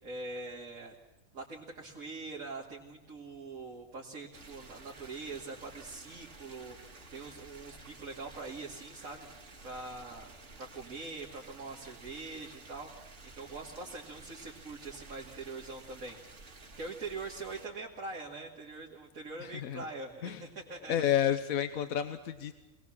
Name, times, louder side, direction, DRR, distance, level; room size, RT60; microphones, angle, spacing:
voice 1, 0.0-0.9 1.3-9.3 9.6-10.3 10.6-16.2 16.8-21.1, right 3 dB, 80° right, -3 dB, 2.8 m, -43 dB
sound 1, 4.3-17.7, right 3 dB, 60° right, 2.3 m, -52 dB
voice 2, 19.4-19.8 20.2-20.4 20.9-22.5, left 10 dB, 80° left, 10 dB, 1.4 m, -30 dB
25.5 x 19.0 x 7.4 m, 1.1 s
omnidirectional pair, 1.4 m